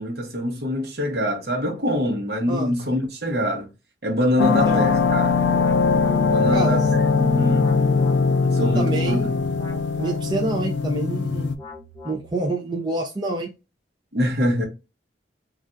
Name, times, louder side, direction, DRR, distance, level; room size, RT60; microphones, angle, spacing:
voice 1, 0.0-3.7 4.0-5.4 6.2-7.7 8.4-9.3 14.1-14.7, equal, 60° right, 1.0 m, -24 dB
sound 1, 4.4-11.5, left 4 dB, 90° left, 0.4 m, -21 dB
voice 2, 6.5-6.9 8.6-9.4 10.0-11.5 12.0-13.5, right 2 dB, 25° right, 0.5 m, -27 dB
sound 2, 6.6-12.7, equal, 25° left, 0.9 m, -44 dB
3.3 x 2.5 x 2.5 m
head